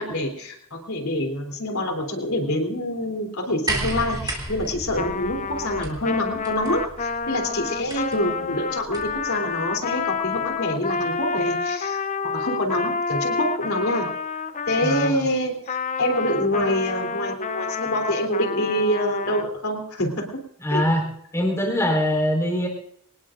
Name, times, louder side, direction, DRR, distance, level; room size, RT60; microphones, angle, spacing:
voice 1, 0.0-14.1 14.6-20.2 20.7-20.8, left 1 dB, 75° left, 3 dB, 3.3 m, -26 dB
sound 1, 3.7-9.3 10.4-10.5, right 2 dB, 20° right, 2.8 m, -34 dB
Trumpet, 5.0-15.2 15.7-19.5, left 5 dB, 35° left, 0.5 m, -29 dB
voice 2, 14.8-15.3 20.6-21.1 21.3-22.7, equal, 15° left, 1 dB, 4.4 m, -23 dB
24.0 x 19.0 x 2.5 m, 0.67 s
head